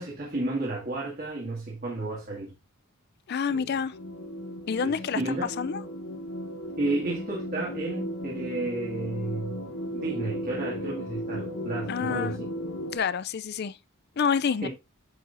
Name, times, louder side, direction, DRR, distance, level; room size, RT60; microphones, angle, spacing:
voice 1, 0.0-2.5 3.5-3.8 4.8-5.5 6.8-9.7 9.9-12.5 14.6-14.7, right 2 dB, 40° right, 2.2 m, -32 dB
voice 2, 3.3-3.9 4.7-5.2 5.6-5.8 11.9-12.4 12.9-13.8 14.2-14.7, left 6 dB, 50° left, 0.4 m, -28 dB
sound 1, 3.9-13.0, equal, 65° left, 1.2 m, -36 dB
9.0 x 6.5 x 2.6 m
head